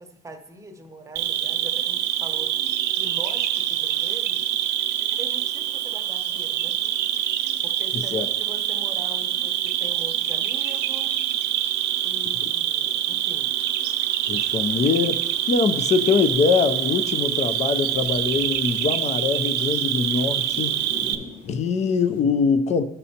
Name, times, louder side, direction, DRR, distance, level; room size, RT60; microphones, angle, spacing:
voice 1, 0.0-2.5 3.0-4.5 5.2-6.8 7.6-11.1 12.0-13.5, right 1 dB, 20° right, 4 dB, 0.8 m, -42 dB
Cricket, 1.2-21.2, right 11 dB, 80° right, 0.6 m, -25 dB
voice 2, 7.9-8.3 14.3-15.2 15.5-20.7 21.4-22.8, left 5 dB, 40° left, 10 dB, 0.5 m, -23 dB
sound 1, 14.2-22.2, left 2 dB, 80° left, 1.4 m, -46 dB
12.5 x 5.4 x 2.8 m, 0.99 s
cardioid pair, 110°, 17 cm